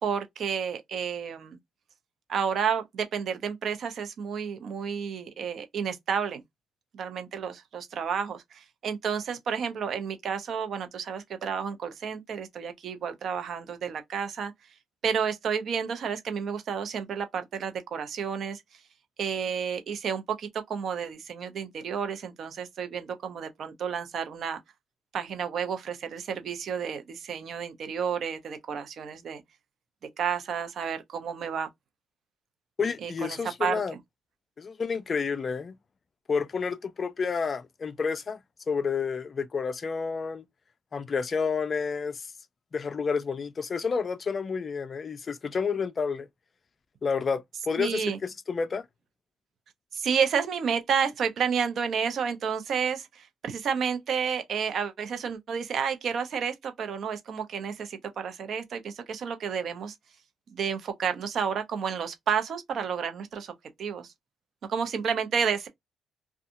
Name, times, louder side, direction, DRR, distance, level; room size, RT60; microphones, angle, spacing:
voice 1, 0.0-1.6 2.3-6.4 6.9-14.5 15.0-18.6 19.2-24.6 25.1-29.4 30.2-31.7 33.0-33.8 47.8-48.2 49.9-59.9 60.5-63.5 63.8-64.1 64.7-65.7, right 7 dB, 60° right, 0.7 m, -31 dB
voice 2, 32.8-34.0 34.6-35.8 36.3-38.4 38.7-40.4 40.9-42.3 42.7-46.3 47.0-48.9, left 5 dB, 40° left, 0.4 m, -30 dB
2.7 x 2.3 x 2.5 m
cardioid pair, 90°, 0 cm